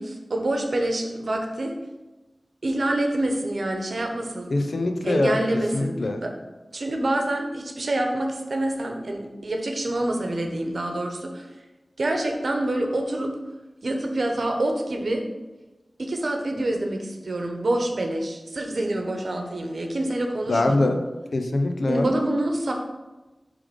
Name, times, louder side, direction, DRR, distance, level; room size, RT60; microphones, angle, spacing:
voice 1, 0.0-1.7 2.6-4.5 5.0-6.3 6.7-11.5 12.0-13.3 13.8-15.2 16.0-20.9 21.9-22.7, right 1 dB, 75° right, 3 dB, 1.0 m, -26 dB
voice 2, 4.5-5.4 5.7-6.2 20.5-21.0 21.3-22.1, left 2 dB, 80° left, 5 dB, 0.7 m, -23 dB
7.1 x 3.4 x 5.2 m, 1.1 s
wide cardioid pair, 65°, 0 cm